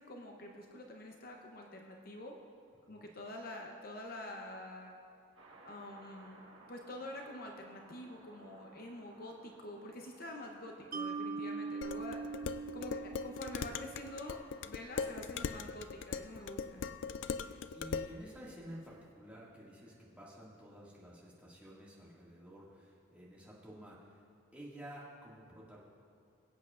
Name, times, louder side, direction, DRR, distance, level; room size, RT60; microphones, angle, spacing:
voice 1, 0.0-2.4 2.9-5.0 5.6-6.4 6.7-12.2 12.7-16.9, left 1 dB, 45° left, 2 dB, 0.8 m, -47 dB
sound 1, 5.4-19.3, right 2 dB, 70° right, 1.5 m, -63 dB
Mallet percussion, 10.9-14.2, right 4 dB, 45° right, 0.6 m, -41 dB
Dishes pots and pans, 11.8-18.2, left 6 dB, 65° left, 0.3 m, -40 dB
voice 2, 17.3-24.2 24.5-25.8, equal, 5° right, -7 dB, 1.9 m, -51 dB
22.5 x 8.2 x 2.5 m, 2.3 s
head